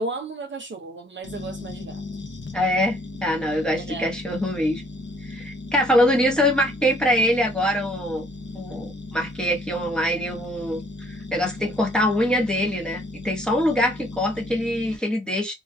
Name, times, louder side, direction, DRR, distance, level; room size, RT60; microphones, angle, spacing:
voice 1, 0.0-2.0 3.7-4.1, right 2 dB, 40° right, 0.5 m, -33 dB
sound 1, 1.2-15.0, left 3 dB, 35° left, 0.6 m, -37 dB
voice 2, 2.5-4.8 5.2-8.3 8.5-15.5, equal, 5° left, 0.7 m, -23 dB
2.4 x 2.1 x 2.4 m
wide cardioid pair, 100°, 31 cm